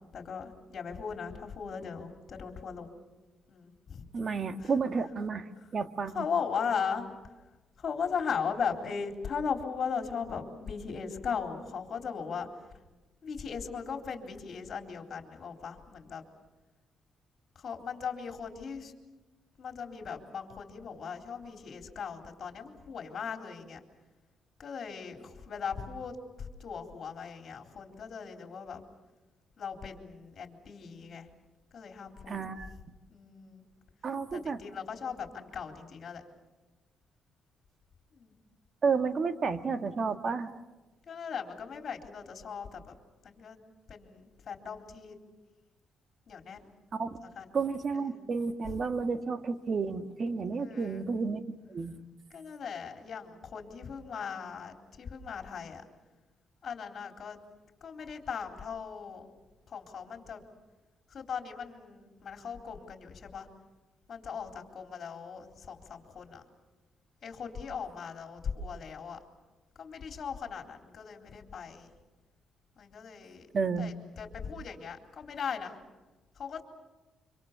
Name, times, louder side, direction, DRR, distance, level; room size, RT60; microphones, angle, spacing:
voice 1, 0.1-2.9 3.5-4.0 4.6-4.7 5.6-5.7 6.1-7.1 7.8-12.5 13.2-16.2 17.6-18.9 19.6-23.8 24.6-28.8 29.6-31.3 31.7-32.4 33.1-33.7 34.3-36.2 38.1-38.4 41.1-43.0 43.2-43.6 43.9-45.2 46.3-46.7 47.4-47.5 47.9-48.2 50.6-51.1 52.3-55.9 56.6-57.4 57.8-59.3 59.7-60.4 61.1-63.5 64.1-66.5 67.2-69.2 69.8-71.9 72.8-73.5 73.8-75.8 76.4-76.6, left 6 dB, 50° left, 4 dB, 3.8 m, -38 dB
voice 2, 4.1-5.5 5.7-6.3 32.3-32.7 34.0-34.6 38.8-40.5 46.9-47.1 47.5-52.0 73.5-73.9, right 5 dB, 45° right, 8 dB, 1.7 m, -31 dB
26.0 x 25.5 x 6.9 m, 1.2 s
cardioid pair, 90°, 0 cm